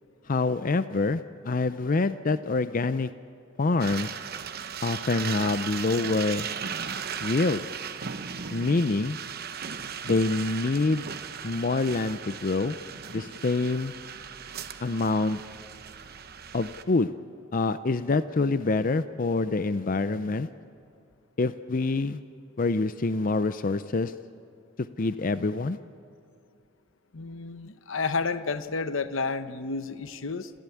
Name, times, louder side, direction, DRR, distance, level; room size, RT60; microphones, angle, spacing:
voice 1, 0.3-3.1 3.6-4.1 4.8-6.5 7.2-7.6 8.5-9.2 10.0-11.1 11.4-12.8 13.1-13.9 14.8-15.4 16.5-17.1 17.5-20.5 21.4-22.2 22.6-24.1 25.0-25.8, left 3 dB, 40° left, 12 dB, 0.5 m, -26 dB
sound 1, 3.8-16.8, right 7 dB, 50° right, 0.9 m, -37 dB
voice 2, 27.1-30.5, left 4 dB, 75° left, 12 dB, 0.8 m, -31 dB
27.5 x 15.5 x 8.5 m, 2.5 s
head